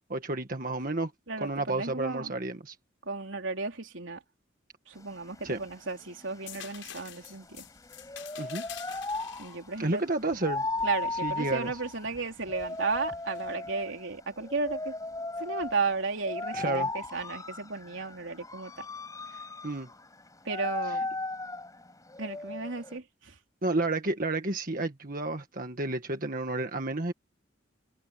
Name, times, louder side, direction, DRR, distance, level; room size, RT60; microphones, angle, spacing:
voice 1, 0.1-1.1 1.4-2.7 5.4-5.6 8.4-8.7 9.8-10.6 11.2-11.7 16.5-16.9 19.6-19.9 23.6-27.1, right 2 dB, 45° right, 1.6 m, -31 dB
voice 2, 1.3-2.3 3.0-4.2 4.9-7.7 9.4-10.0 10.8-14.9 15.4-18.9 20.4-21.1 22.2-23.4, right 4 dB, 75° right, 3.5 m, -34 dB
sound 1, 5.0-23.0, left 2 dB, 15° left, 6.5 m, -37 dB
sound 2, 6.5-12.1 12.6-13.6 15.6-15.8, left 11 dB, 80° left, 7.0 m, -48 dB
head